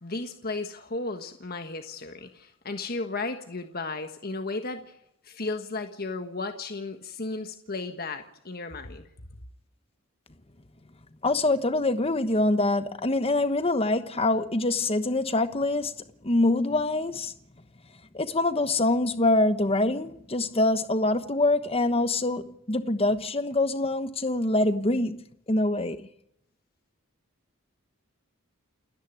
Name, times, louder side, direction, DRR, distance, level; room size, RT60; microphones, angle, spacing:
voice 1, 0.0-4.9 5.2-9.1, left 3 dB, 45° left, 1.5 m, -34 dB
voice 2, 11.2-15.9 16.2-17.3 18.1-25.2 25.5-26.1, left 2 dB, 25° left, 1.1 m, -25 dB
29.0 x 10.5 x 9.3 m
head